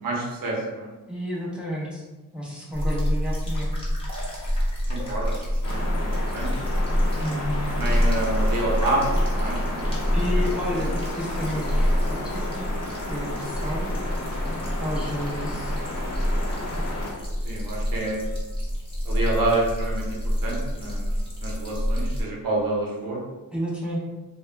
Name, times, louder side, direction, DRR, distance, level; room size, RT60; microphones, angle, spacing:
voice 1, 0.0-0.9 4.9-6.5 7.7-10.0 14.5-14.7 17.4-18.2 19.0-21.1 21.4-23.2, right 2 dB, 85° right, -2 dB, 0.7 m, -28 dB
voice 2, 1.1-2.0 2.3-3.7 7.2-7.7 10.1-13.9 14.8-15.8 23.5-24.0, equal, 5° right, -5 dB, 0.5 m, -31 dB
sound 1, 2.7-22.2, equal, 15° left, 0.9 m, -27 dB
sound 2, 5.6-17.1, left 2 dB, 50° left, 0.6 m, -33 dB
2.3 x 2.1 x 3.1 m, 1.1 s
wide cardioid pair, 115°, 33 cm